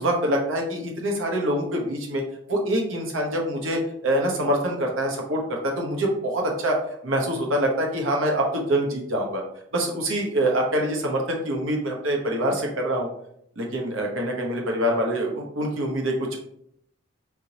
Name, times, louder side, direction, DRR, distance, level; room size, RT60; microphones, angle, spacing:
voice 1, 0.0-2.2 2.5-6.8 7.0-9.4 9.7-13.1 13.6-16.4, right 1 dB, 80° right, 0 dB, 1.1 m, -25 dB
4.8 x 3.6 x 2.8 m, 0.72 s
head